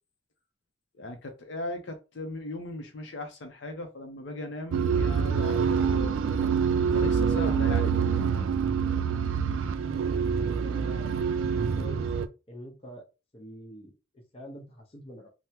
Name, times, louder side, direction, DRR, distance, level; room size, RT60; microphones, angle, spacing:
voice 1, 0.9-6.4 6.9-8.5, left 2 dB, 65° left, 0.5 m, -38 dB
sound 1, 4.7-12.3, right 6 dB, 85° right, 0.3 m, -26 dB
voice 2, 10.4-11.1 11.7-12.1 12.5-13.1 13.3-15.3, equal, 30° left, 0.7 m, -45 dB
3.4 x 2.0 x 2.8 m
head